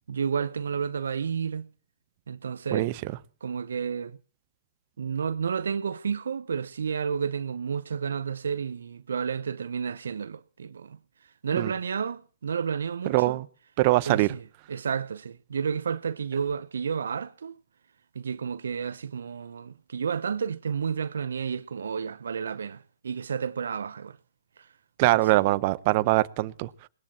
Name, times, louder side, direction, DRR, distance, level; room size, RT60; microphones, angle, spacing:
voice 1, 0.1-1.7 2.3-2.9 3.4-4.2 5.0-11.0 11.4-13.4 14.1-17.6 18.1-24.2 24.6-24.7 25.1-25.6, right 6 dB, 75° right, 0.7 m, -31 dB
voice 2, 13.1-13.5 13.8-14.3 25.0-26.9, right 19 dB, 45° right, 0.8 m, -23 dB
21.5 x 19.5 x 2.9 m
hypercardioid pair, 120°, 0 cm